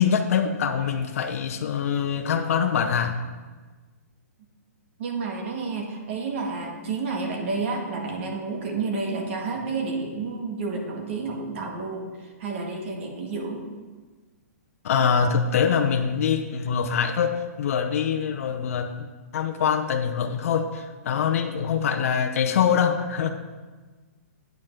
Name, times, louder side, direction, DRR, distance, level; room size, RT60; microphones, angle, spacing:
voice 1, 0.0-3.2 14.8-18.9 19.3-23.3, left 7 dB, 60° left, 5 dB, 0.7 m, -24 dB
voice 2, 5.0-13.6, right 4 dB, 50° right, 1 dB, 1.7 m, -30 dB
9.0 x 5.4 x 6.1 m, 1.4 s
hypercardioid pair, 155°, 9 cm